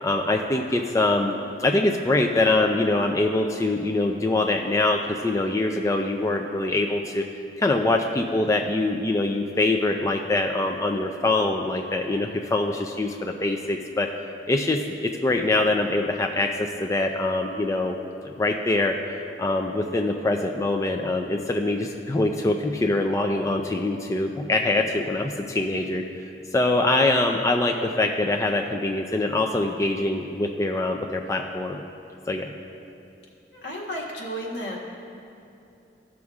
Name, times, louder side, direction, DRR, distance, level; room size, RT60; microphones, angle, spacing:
voice 1, 0.0-7.2 7.6-14.1 14.5-18.0 18.4-26.0 26.5-31.8 32.3-32.5, left 2 dB, 20° left, 3 dB, 0.3 m, -24 dB
voice 2, 33.5-34.8, equal, 80° left, -4 dB, 1.7 m, -33 dB
16.0 x 6.2 x 2.4 m, 2.8 s
head